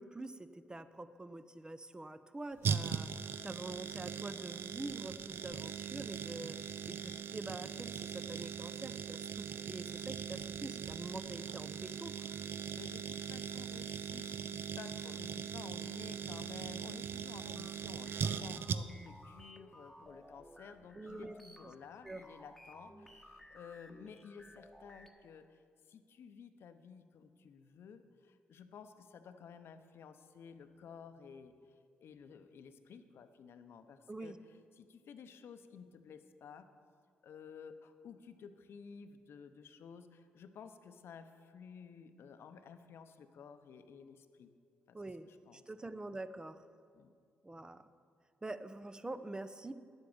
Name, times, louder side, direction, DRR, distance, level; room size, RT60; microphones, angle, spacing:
voice 1, 0.0-3.1 3.4-6.6 6.9-12.1 20.9-21.3 22.0-22.2 34.1-34.4 44.9-45.3 45.5-46.6 47.4-47.8 48.4-49.7, right 2 dB, 20° right, 12 dB, 0.7 m, -45 dB
sound 1, 2.6-19.1 19.4-19.5, right 7 dB, 65° right, 0.5 m, -40 dB
voice 2, 12.7-25.6 25.9-34.4 34.7-36.7 37.2-44.5 44.9-45.0 45.2-45.6 46.9-47.1, left 6 dB, 70° left, 9 dB, 0.8 m, -53 dB
sound 2, 17.4-25.1, left 1 dB, 5° left, 1.3 m, -57 dB
10.5 x 8.0 x 7.1 m, 2.2 s
supercardioid pair, 55°, 4 cm